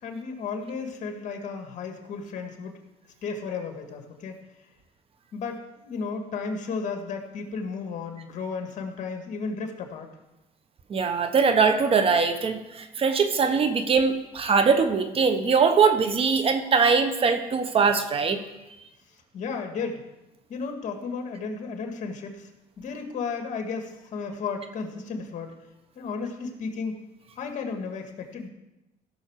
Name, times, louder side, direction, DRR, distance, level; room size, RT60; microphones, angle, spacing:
voice 1, 0.0-2.7 3.2-4.4 5.3-10.1 19.3-20.0 20.5-22.5 22.8-25.5 26.0-27.0 27.4-28.5, left 5 dB, 55° left, 4 dB, 1.9 m, -33 dB
voice 2, 10.9-18.4, right 5 dB, 40° right, 8 dB, 1.1 m, -22 dB
16.0 x 6.4 x 4.7 m, 0.97 s
cardioid pair, 115°, 15 cm